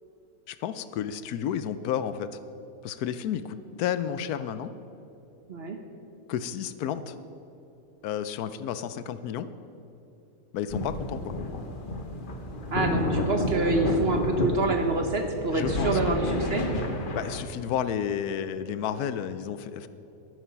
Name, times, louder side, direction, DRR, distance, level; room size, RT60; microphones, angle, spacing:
voice 1, 0.5-2.4 2.8-4.7 6.3-7.1 8.0-9.5 10.5-11.3 15.5-16.2 17.1-19.9, left 9 dB, 75° left, 13 dB, 1.1 m, -31 dB
sound 1, 10.7-17.4, left 1 dB, 40° left, 1.0 m, -30 dB
voice 2, 12.7-16.7, right 3 dB, 45° right, 5 dB, 0.9 m, -27 dB
11.0 x 9.9 x 5.7 m, 2.9 s
omnidirectional pair, 1.7 m